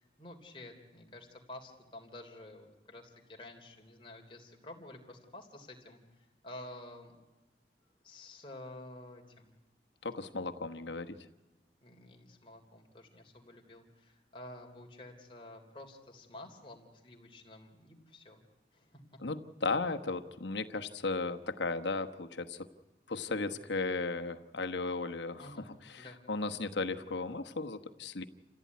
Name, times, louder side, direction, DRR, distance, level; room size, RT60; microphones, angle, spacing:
voice 1, 0.0-7.1 8.0-9.5 10.7-10.8 11.8-18.4 18.7-19.0 25.4-25.6 26.0-26.2, left 1 dB, 30° left, 2 dB, 3.3 m, -50 dB
voice 2, 10.0-11.2 19.2-22.6 23.1-25.6 25.8-28.2, left 3 dB, 85° left, 6 dB, 1.2 m, -35 dB
28.0 x 15.5 x 9.5 m, 1.1 s
head